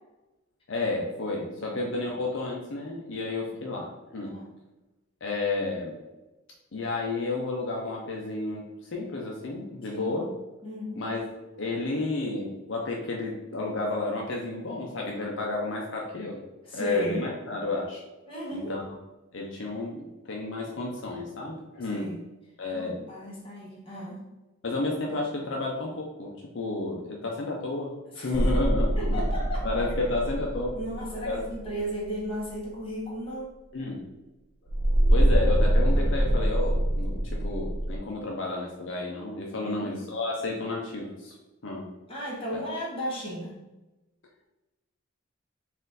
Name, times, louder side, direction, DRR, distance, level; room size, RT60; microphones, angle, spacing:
voice 1, 0.7-4.3 5.2-6.0 6.7-8.6 8.9-10.3 11.0-16.4 16.7-18.0 18.5-18.9 19.3-22.1 22.6-23.0 24.6-29.2 29.6-30.8 31.2-31.4 33.7-34.0 35.1-41.4 41.6-41.9 42.5-42.6, left 2 dB, 65° left, -2 dB, 0.6 m, -31 dB
voice 2, 4.2-4.5 9.9-10.2 10.6-11.0 16.6-17.2 18.3-18.7 21.9-22.2 22.7-24.2 28.1-28.5 29.0-29.7 30.7-33.5 39.5-40.0 42.1-43.6, equal, 25° left, -5 dB, 1.3 m, -35 dB
sound 1, 28.3-31.9 34.7-38.0, right 1 dB, 30° right, 0.5 m, -24 dB
4.2 x 2.6 x 3.9 m, 1.0 s
head